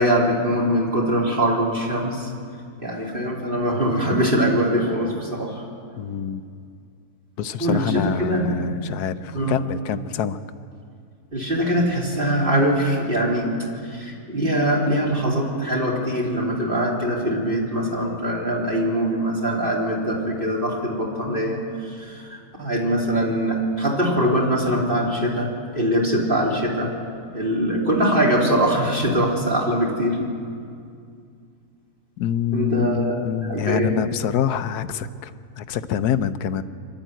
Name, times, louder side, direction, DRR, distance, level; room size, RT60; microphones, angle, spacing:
voice 1, 0.0-2.3 2.8-5.6 7.6-8.5 9.3-9.6 11.3-13.5 13.9-25.5 25.8-26.9 27.3-30.2 32.5-33.2 33.5-33.9, equal, 35° right, -4 dB, 3.5 m, -22 dB
voice 2, 6.0-6.4 7.4-10.4 32.2-35.3 35.6-36.6, left 9 dB, 85° left, 12 dB, 1.3 m, -26 dB
25.0 x 12.0 x 9.1 m, 2.3 s
omnidirectional pair, 1.7 m